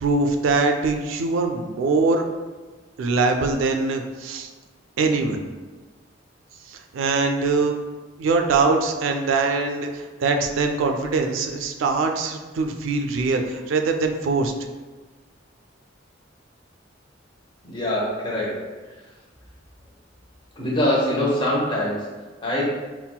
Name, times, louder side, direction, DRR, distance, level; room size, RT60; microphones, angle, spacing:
voice 1, 0.0-2.3 3.0-4.5 5.0-5.4 6.7-7.8 8.2-14.5, right 3 dB, 75° right, 4 dB, 0.3 m, -22 dB
voice 2, 17.6-18.7 20.5-22.6, left 1 dB, 25° left, -5 dB, 0.7 m, -24 dB
4.0 x 2.0 x 2.2 m, 1.3 s
head